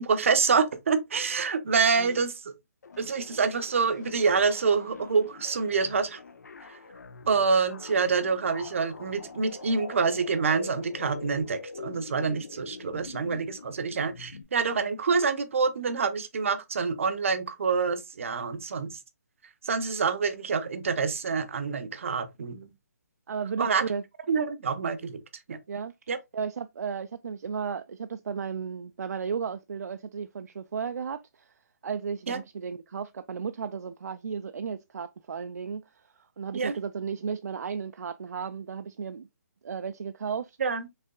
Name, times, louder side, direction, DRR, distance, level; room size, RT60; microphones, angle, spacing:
voice 1, 0.0-2.3 3.0-6.2 7.3-19.0 19.6-22.7 23.6-23.8 24.3-25.2 25.5-25.6 26.1-26.2 32.3-32.4 36.5-36.7 40.6-40.9, right 5 dB, 50° right, 0.7 m, -26 dB
sound 1, 2.8-14.4, left 4 dB, 75° left, 0.7 m, -44 dB
voice 2, 23.3-24.0 25.7-25.9 26.3-31.5 31.8-39.3 39.6-40.6, right 6 dB, 70° right, 0.4 m, -34 dB
5.5 x 3.3 x 2.2 m
hypercardioid pair, 170°, 9 cm